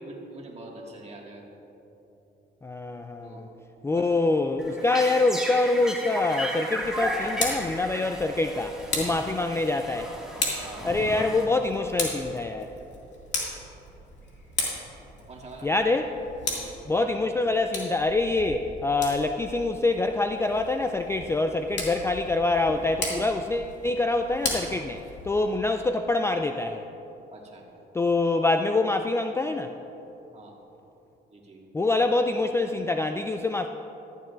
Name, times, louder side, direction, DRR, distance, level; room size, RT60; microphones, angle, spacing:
voice 1, 0.0-1.4 3.2-3.4 3.9-4.2 10.6-10.9 15.3-15.7 16.4-17.3 27.3-27.7 30.3-30.6 31.3-31.7, right 2 dB, 35° right, -1 dB, 1.9 m, -44 dB
voice 2, 2.6-3.5 3.8-10.1 10.8-12.7 15.6-16.1 16.9-26.8 27.9-29.7 31.7-33.7, left 2 dB, 15° left, 6 dB, 0.3 m, -25 dB
sound 1, 4.6-11.9, right 1 dB, ahead, 1.9 m, -35 dB
Tick, 7.1-25.5, left 3 dB, 65° left, 2.2 m, -36 dB
14.5 x 11.0 x 2.5 m, 3.0 s
cardioid pair, 90°, 20 cm